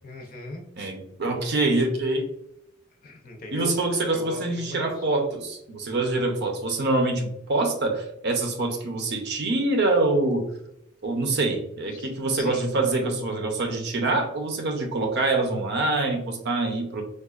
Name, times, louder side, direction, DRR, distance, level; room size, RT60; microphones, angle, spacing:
voice 1, 0.0-0.6 3.0-3.7 4.1-5.1 11.9-12.7, left 1 dB, 45° left, 3 dB, 0.6 m, -39 dB
voice 2, 0.8-2.3 3.5-10.5 11.0-17.0, right 2 dB, 55° right, 4 dB, 0.6 m, -25 dB
4.8 x 2.3 x 2.3 m, 0.80 s
head